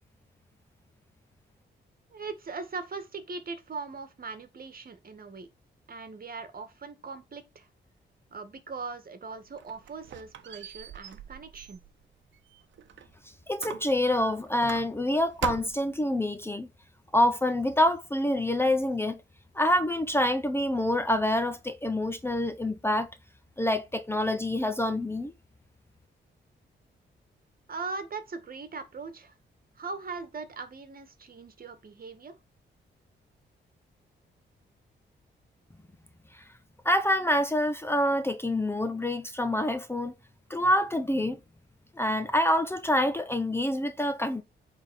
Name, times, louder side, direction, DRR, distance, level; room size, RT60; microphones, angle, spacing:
voice 1, 2.1-5.5 5.9-7.7 8.3-11.8 27.7-29.3 29.8-32.3, right 4 dB, 50° right, 1.8 m, -40 dB
Squeak, 9.3-13.1 13.6-15.1 15.4-16.0, right 9 dB, 75° right, 0.9 m, -41 dB
voice 2, 13.5-16.7 17.1-19.2 19.5-23.1 23.6-25.3 36.3-36.4 36.8-40.1 40.5-41.4 42.0-44.4, left 1 dB, 10° left, 0.9 m, -26 dB
8.7 x 3.8 x 4.3 m
cardioid pair, 75°, 19 cm